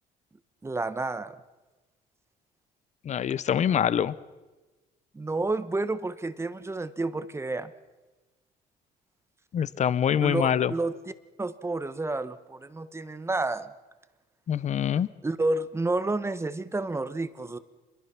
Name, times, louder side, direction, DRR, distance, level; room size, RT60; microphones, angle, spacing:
voice 1, 0.6-1.3 5.1-7.7 10.2-11.0 11.4-13.7 14.9-17.6, right 2 dB, 15° right, 13 dB, 1.2 m, -30 dB
voice 2, 3.0-4.1 9.5-10.7 14.5-15.1, left 9 dB, 45° left, 18 dB, 0.9 m, -25 dB
27.0 x 22.0 x 6.0 m, 1.2 s
cardioid pair, 110°, 17 cm